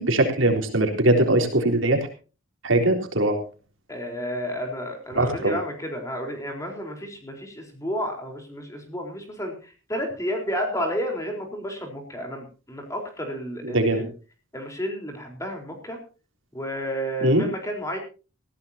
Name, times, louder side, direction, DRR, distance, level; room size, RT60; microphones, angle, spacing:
voice 1, 0.0-2.0 2.6-3.4 5.2-5.6 13.7-14.0 17.2-17.4, right 1 dB, 65° right, 4 dB, 3.6 m, -21 dB
voice 2, 3.9-14.1 14.5-16.0 16.5-18.0, equal, 15° left, 2 dB, 4.2 m, -31 dB
20.5 x 16.0 x 2.8 m, 0.34 s
head